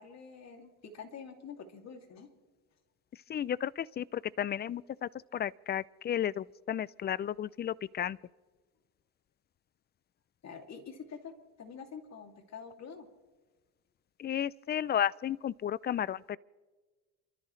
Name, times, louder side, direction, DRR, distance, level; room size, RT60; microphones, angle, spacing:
voice 1, 0.0-2.3 10.4-11.3 11.6-13.1, left 6 dB, 50° left, 2.7 m, -46 dB
voice 2, 3.1-8.2 14.2-16.4, left 10 dB, 30° left, 0.4 m, -33 dB
29.0 x 13.5 x 3.2 m
cardioid pair, 100°, 35 cm